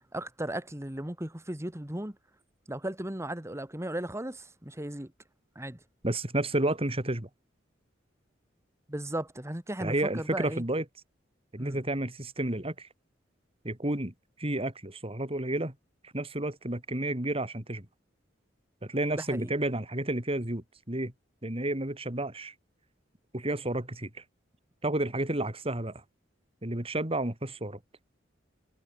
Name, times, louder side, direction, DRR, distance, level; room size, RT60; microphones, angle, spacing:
voice 1, 0.1-2.2 2.7-5.1 5.6-5.8 8.9-10.6 11.6-11.8 19.1-19.5, right 1 dB, 15° right, 2.1 m, -36 dB
voice 2, 6.0-7.3 9.8-10.8 11.5-12.9 13.6-14.1 14.4-15.7 16.0-17.8 18.8-21.1 21.4-22.5 23.3-24.2 24.8-26.0 26.6-27.8, right 1 dB, 30° right, 3.3 m, -31 dB
head